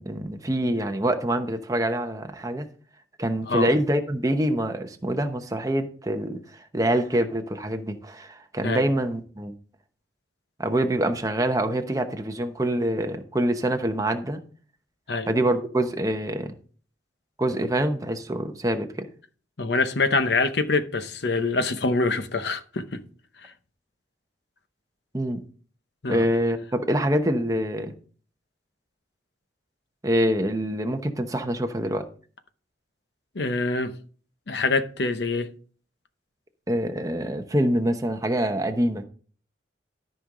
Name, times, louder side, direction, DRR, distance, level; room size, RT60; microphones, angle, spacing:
voice 1, 0.0-2.7 3.2-9.5 10.6-14.4 15.3-16.5 17.4-19.1 25.1-25.4 26.1-27.9 30.0-32.0 36.7-39.1, right 1 dB, 20° right, 0.9 m, -25 dB
voice 2, 19.6-23.0 23.4-23.5 26.0-26.3 33.3-33.9 34.5-35.5, left 3 dB, 60° left, 0.8 m, -25 dB
13.5 x 5.4 x 3.8 m
head